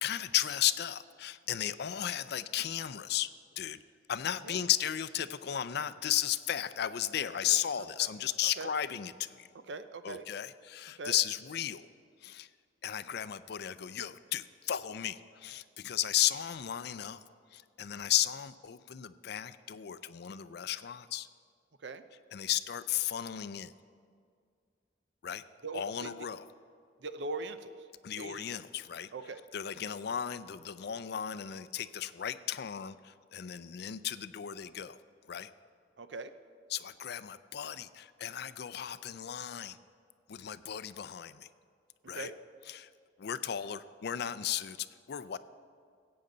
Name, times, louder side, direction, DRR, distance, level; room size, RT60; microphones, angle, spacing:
voice 1, 0.0-3.3 3.6-3.8 4.1-9.5 10.0-11.9 12.2-12.5 12.8-17.2 17.5-21.3 22.3-23.7 25.2-25.4 25.7-26.5 28.0-29.1 29.5-35.0 35.3-35.5 36.7-39.8 40.3-41.5 42.1-42.3 42.7-42.9 43.2-45.4, left 11 dB, 65° left, 14 dB, 0.4 m, -34 dB
voice 2, 9.7-10.2 11.0-11.2 21.8-22.0 25.6-26.1 27.0-27.7 28.2-28.5 29.1-29.4 36.0-36.3 42.1-42.4, right 3 dB, 75° right, 11 dB, 0.6 m, -40 dB
20.0 x 8.7 x 3.9 m, 2.2 s
head